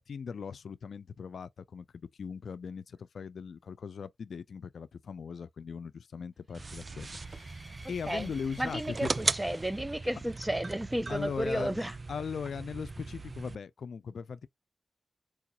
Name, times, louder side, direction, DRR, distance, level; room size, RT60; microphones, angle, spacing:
voice 1, 0.0-9.1 11.1-11.8 12.1-14.5, left 6 dB, 80° left, 0.3 m, -39 dB
sound 1, 6.5-11.8, right 1 dB, 35° right, 1.4 m, -56 dB
sound 2, 6.5-13.6, right 3 dB, 50° right, 0.3 m, -38 dB
voice 2, 8.6-11.9, right 1 dB, 15° right, 0.7 m, -33 dB
4.6 x 2.3 x 2.7 m
cardioid pair, 45°, 0 cm